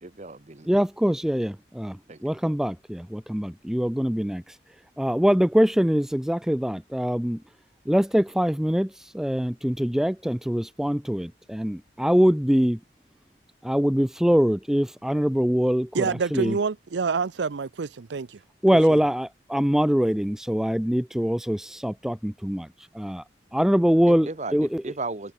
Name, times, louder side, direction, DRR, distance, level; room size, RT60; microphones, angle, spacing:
voice 1, 0.0-0.7 2.1-2.2 24.1-25.3, right 3 dB, 40° right, 1.0 m, -35 dB
voice 2, 0.7-4.6 5.0-7.4 7.9-12.8 13.6-16.6 18.6-22.7 22.9-23.2 23.5-24.9, equal, 5° right, 0.3 m, -23 dB
voice 3, 15.9-18.4 18.9-19.0, right 5 dB, 85° right, 0.6 m, -27 dB
head